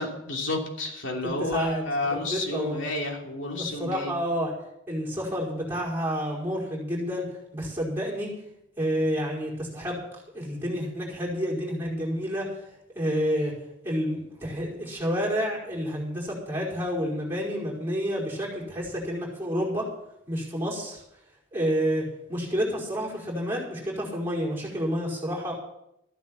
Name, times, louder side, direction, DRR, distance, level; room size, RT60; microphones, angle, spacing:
voice 1, 0.0-4.2, left 2 dB, 65° left, 1 dB, 2.9 m, -30 dB
voice 2, 1.4-1.8 2.3-2.8 3.6-4.5 4.9-8.3 8.8-10.0 10.3-12.6 12.9-13.6 13.8-19.9 20.3-21.0 21.5-25.5, equal, 10° right, -4 dB, 4.9 m, -29 dB
14.5 x 9.5 x 7.2 m, 0.81 s
head